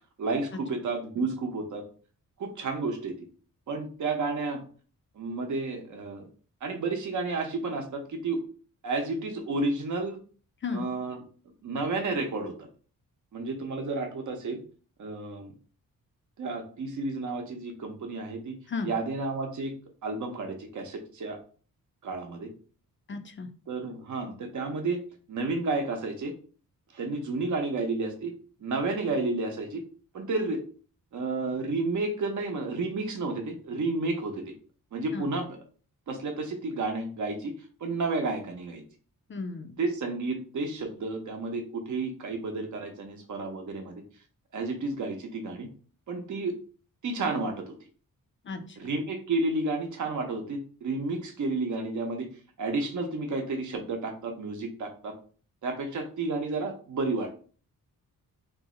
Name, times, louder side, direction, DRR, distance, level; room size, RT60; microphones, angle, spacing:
voice 1, 0.2-1.8 2.4-3.3 3.7-4.6 5.2-6.3 6.6-8.4 8.8-10.2 10.7-11.2 11.6-12.7 13.3-14.6 15.0-15.5 16.4-18.6 18.8-19.7 20.0-21.4 22.0-22.5 23.7-25.0 25.3-26.3 26.9-28.3 28.6-29.8 30.1-30.6 31.1-34.4 34.9-35.6 36.1-37.5 37.8-38.8 39.8-44.0 44.5-45.7 46.1-46.5 47.0-47.8 48.8-52.3 52.6-55.1 55.6-57.3, right 3 dB, 60° right, 4 dB, 0.7 m, -31 dB
voice 2, 23.1-23.5 35.1-35.3 39.3-39.8 48.5-48.8, left 4 dB, 35° left, 7 dB, 0.4 m, -34 dB
2.6 x 2.0 x 3.7 m, 0.41 s
cardioid pair, 85°, 35 cm